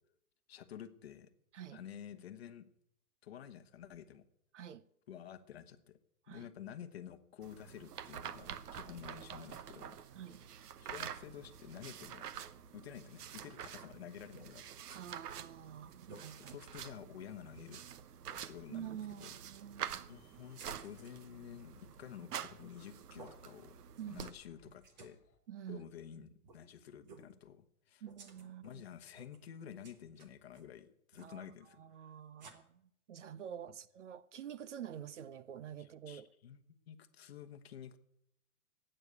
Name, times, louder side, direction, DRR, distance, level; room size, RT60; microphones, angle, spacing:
voice 1, 0.5-1.3 1.7-2.7 3.2-4.2 5.1-6.0 6.3-10.0 10.8-12.3 12.7-15.1 16.4-17.8 18.5-19.3 20.1-23.7 24.1-25.2 25.7-28.0 28.6-32.1 35.8-36.6 36.9-38.0, left 9 dB, 40° left, 1.1 m, -51 dB
sound 1, 7.4-24.3, right 9 dB, 85° right, 1.0 m, -48 dB
sound 2, 14.3-15.0 15.4-15.5 15.9-16.2 16.8-16.9 17.5-17.6 18.2-18.4 20.6-21.1 22.5-22.8 23.2-23.4 24.0-24.4 24.6-25.2 26.4-26.6 27.0-27.3 28.0-28.8 29.1-29.5 29.8-30.7 31.1-31.4 32.4-32.5, right 4 dB, 30° right, 1.2 m, -56 dB
voice 2, 14.9-16.6 18.7-20.1 24.0-24.3 25.5-25.9 28.0-28.8 31.2-31.5 31.8-32.8 33.1-36.3, right 9 dB, 50° right, 0.6 m, -47 dB
sound 3, 20.1-25.4, left 8 dB, 15° left, 1.6 m, -73 dB
14.5 x 9.0 x 8.1 m
hypercardioid pair, 175°, 45 cm